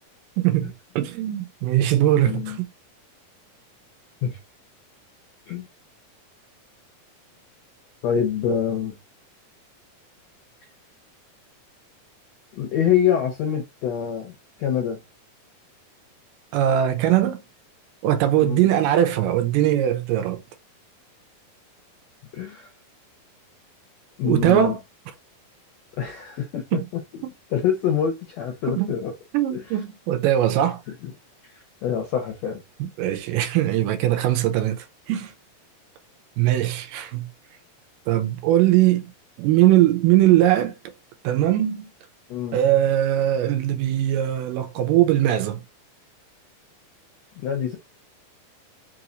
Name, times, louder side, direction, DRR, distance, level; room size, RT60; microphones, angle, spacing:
voice 1, 0.4-2.7 16.5-17.4 18.0-20.4 24.2-24.8 26.7-26.9 28.7-29.0 29.3-30.8 32.8-35.3 36.4-37.3 38.1-39.1 39.4-40.8 41.2-41.9 42.5-45.6, right 12 dB, 80° right, 2.3 m, -21 dB
voice 2, 2.2-2.6 4.2-4.4 5.5-5.7 8.0-9.0 12.5-14.3 14.6-15.0 18.4-18.7 22.3-22.7 24.2-24.7 26.0-27.0 27.5-29.1 29.5-29.6 31.8-32.6 42.3-42.6 47.4-47.8, left 8 dB, 75° left, 1.5 m, -25 dB
5.5 x 2.9 x 2.5 m
omnidirectional pair, 4.0 m